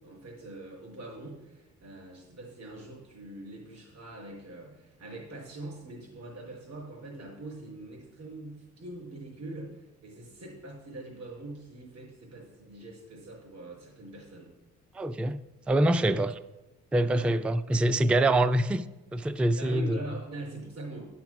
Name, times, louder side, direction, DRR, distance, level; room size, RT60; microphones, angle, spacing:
voice 1, 0.0-14.5 15.9-16.2 17.1-17.3 19.6-21.0, right 2 dB, 65° right, 4.1 m, -43 dB
voice 2, 14.9-15.4 15.7-16.3 16.9-18.8 19.1-20.0, right 1 dB, 5° right, 0.3 m, -25 dB
10.5 x 5.9 x 6.0 m
cardioid pair, 90°, 30 cm